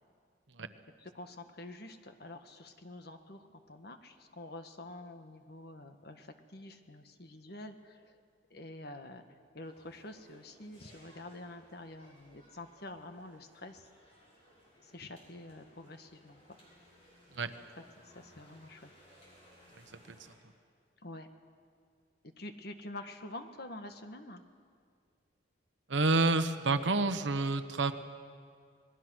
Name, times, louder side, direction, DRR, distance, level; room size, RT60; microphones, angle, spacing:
voice 1, 1.0-8.2 8.5-13.9 14.8-16.6 18.0-18.9 21.0-21.3 22.2-24.4, left 2 dB, 55° left, 7 dB, 1.5 m, -47 dB
sound 1, 9.6-20.4, equal, 30° left, 6.3 m, -62 dB
voice 2, 25.9-27.9, right 3 dB, 75° right, 9 dB, 1.1 m, -28 dB
26.5 x 20.5 x 6.3 m, 2.2 s
head